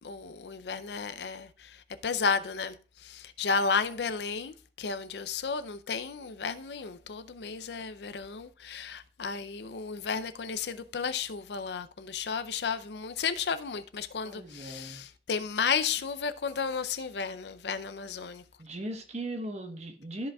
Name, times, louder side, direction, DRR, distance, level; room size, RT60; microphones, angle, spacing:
voice 1, 0.0-18.4, left 5 dB, 65° left, 0.5 m, -33 dB
voice 2, 14.3-15.0 18.6-20.3, right 1 dB, 40° right, 1.1 m, -38 dB
13.5 x 5.1 x 2.3 m
head